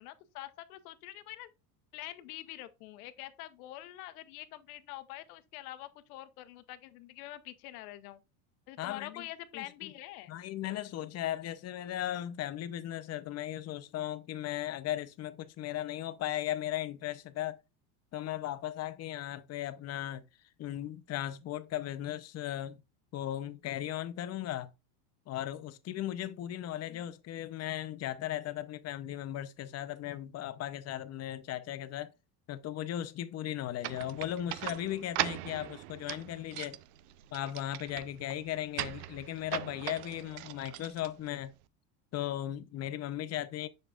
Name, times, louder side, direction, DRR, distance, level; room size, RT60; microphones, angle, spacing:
voice 1, 0.0-1.5 1.9-8.2 8.7-10.4 26.9-27.0, left 15 dB, 85° left, 0.9 m, -45 dB
voice 2, 8.8-9.3 9.5-9.9 10.3-17.6 18.1-20.2 20.6-22.8 23.1-24.7 25.3-32.1 32.5-36.8 37.3-41.5 42.1-43.7, left 12 dB, 35° left, 0.6 m, -37 dB
sound 1, 33.8-41.6, right 16 dB, 80° right, 0.6 m, -40 dB
7.0 x 6.4 x 2.4 m
supercardioid pair, 125°, 43 cm